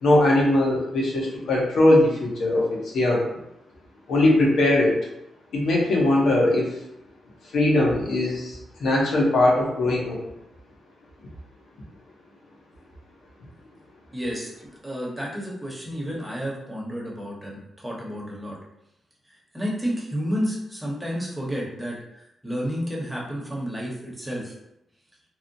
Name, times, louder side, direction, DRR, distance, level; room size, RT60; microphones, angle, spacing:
voice 1, 0.0-3.2 4.1-4.9 5.5-6.7 7.5-10.2, left 1 dB, 75° left, -3 dB, 0.8 m, -20 dB
voice 2, 14.1-18.6 19.5-24.5, equal, 5° right, -4 dB, 0.9 m, -31 dB
2.8 x 2.1 x 2.6 m, 0.85 s
cardioid pair, 80°, 0 cm